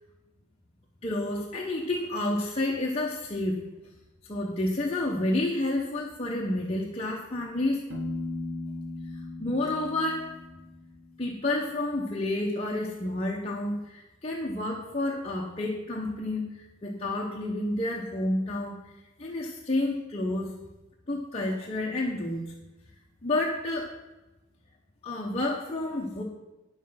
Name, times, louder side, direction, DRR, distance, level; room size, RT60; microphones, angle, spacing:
voice 1, 1.0-3.6 4.3-7.8 9.4-10.4 11.2-18.9 19.2-20.5 21.1-22.4 23.2-23.9 25.0-26.2, left 1 dB, 30° left, -2 dB, 0.9 m, -30 dB
Piano, 7.9-11.6, left 2 dB, 70° right, 1.6 m, -38 dB
9.4 x 7.2 x 5.6 m, 1.1 s
head